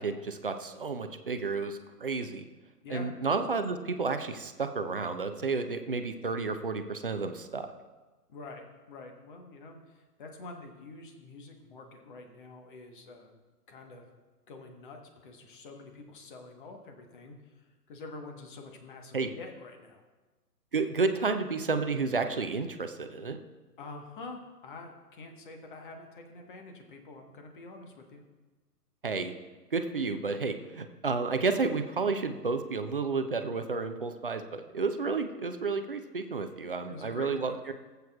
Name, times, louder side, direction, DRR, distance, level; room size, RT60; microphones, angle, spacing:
voice 1, 0.0-2.5 2.9-7.7 19.1-19.3 20.7-23.4 29.0-29.3 29.7-37.7, right 4 dB, 35° right, 8 dB, 0.5 m, -31 dB
voice 2, 8.3-13.3 13.7-14.1 14.5-20.0 23.8-28.2 36.9-37.6, left 3 dB, 30° left, 3 dB, 1.3 m, -47 dB
19.0 x 8.0 x 2.4 m, 1.2 s
figure-of-eight pair, 135°, 48 cm